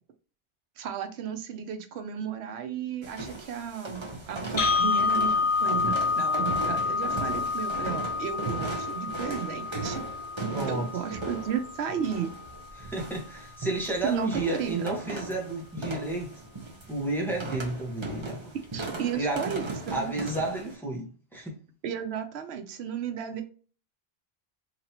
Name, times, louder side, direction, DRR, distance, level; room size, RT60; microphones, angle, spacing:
voice 1, 0.8-10.0 10.7-12.3 14.0-14.9 18.7-20.1 21.8-23.4, right 8 dB, 85° right, 0.9 m, -34 dB
sound 1, 3.0-20.8, right 3 dB, 30° right, 0.9 m, -37 dB
sound 2, 4.6-12.6, left 4 dB, 55° left, 0.9 m, -29 dB
voice 2, 10.5-10.9 12.8-16.3 16.9-18.5 19.1-19.5 19.9-21.6, right 2 dB, ahead, 1.0 m, -31 dB
3.8 x 2.9 x 2.8 m
omnidirectional pair, 1.1 m